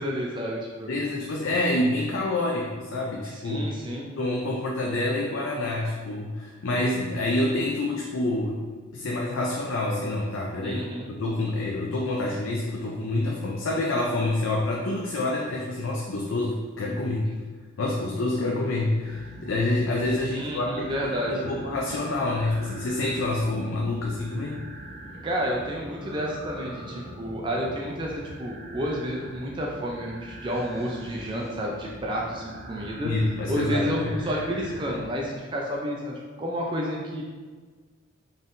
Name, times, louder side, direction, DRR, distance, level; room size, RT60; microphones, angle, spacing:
voice 1, 0.0-0.9 3.3-4.1 10.6-11.1 20.3-21.5 25.2-33.1 33.5-37.2, equal, 25° right, -2 dB, 0.4 m, -30 dB
voice 2, 0.9-3.6 4.2-8.6 8.9-10.8 11.1-17.3 17.8-20.9 21.3-24.6 33.0-34.1, left 2 dB, 70° left, -2 dB, 0.5 m, -27 dB
sound 1, 19.0-35.1, equal, 50° right, 1.1 m, -43 dB
4.0 x 3.7 x 2.5 m, 1.4 s
head